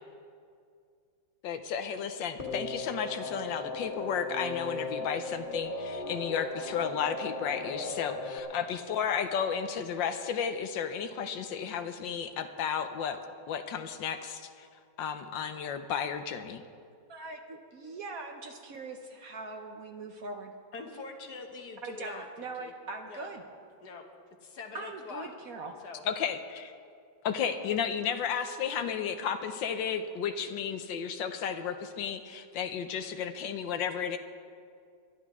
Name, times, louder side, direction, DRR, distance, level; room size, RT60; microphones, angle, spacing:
voice 1, 1.4-13.2 13.5-14.7 15.0-16.6 26.1-26.7 27.2-34.2, left 7 dB, 75° left, 8 dB, 1.4 m, -33 dB
sound 1, 2.4-8.4, left 2 dB, 25° left, 1.8 m, -37 dB
voice 2, 17.1-20.5 21.8-23.4 24.7-25.7, right 3 dB, 55° right, 4 dB, 1.1 m, -41 dB
voice 3, 20.7-22.7 23.1-23.3 23.8-24.0 24.4-25.3 25.8-26.0, left 4 dB, 60° left, 4 dB, 1.7 m, -44 dB
21.5 x 12.5 x 3.6 m, 2.3 s
omnidirectional pair, 2.1 m